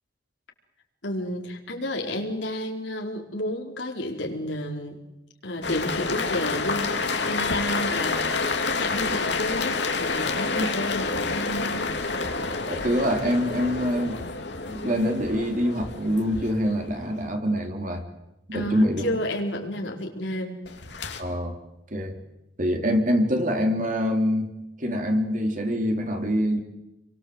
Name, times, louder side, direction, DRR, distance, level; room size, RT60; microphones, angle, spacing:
voice 1, 1.0-5.0 5.4-11.9 18.5-20.6, left 1 dB, 90° left, 1 dB, 4.5 m, -31 dB
sound 1, 5.6-17.2 20.7-21.2, left 4 dB, 70° left, 2.7 m, -29 dB
voice 2, 12.7-14.2 14.7-18.0 18.5-19.0 21.2-21.6 21.9-22.1 22.6-24.5 24.8-26.6, equal, 45° right, 3 dB, 3.6 m, -25 dB
29.0 x 23.5 x 7.9 m, 0.96 s
head